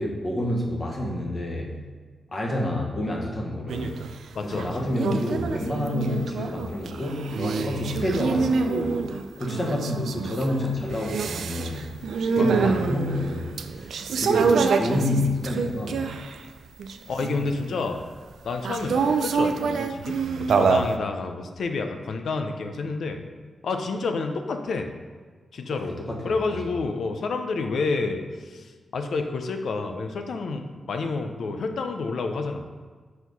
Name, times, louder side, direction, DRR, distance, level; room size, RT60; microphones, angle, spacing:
voice 1, 0.0-1.8 2.3-4.1 4.4-9.0 9.4-11.9 12.4-16.1 25.9-26.6, left 1 dB, 35° left, -1 dB, 1.2 m, -28 dB
sound 1, 3.7-4.1 4.5-16.4 16.8-17.7 18.6-21.0, right 5 dB, 85° right, 0.3 m, -26 dB
voice 2, 4.3-4.9 12.4-12.7 17.1-18.0 18.4-23.2 23.6-24.9 25.5-26.0 26.2-32.7, left 3 dB, 75° left, 6 dB, 0.6 m, -29 dB
4.6 x 4.2 x 5.3 m, 1.5 s
cardioid pair, 90°, 0 cm